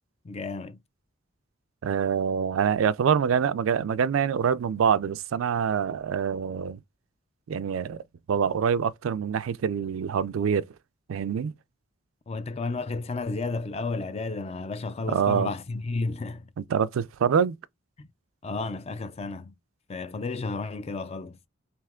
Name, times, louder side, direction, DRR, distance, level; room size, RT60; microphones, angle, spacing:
voice 1, 0.2-0.8 12.3-16.5 18.0-18.1 18.4-19.5 19.9-21.4, left 3 dB, 30° left, 0.4 m, -32 dB
voice 2, 1.8-6.8 7.5-8.0 8.3-10.7 11.1-11.5 15.1-15.5 16.6-17.6, right 7 dB, 90° right, 0.4 m, -25 dB
3.3 x 3.0 x 3.6 m
head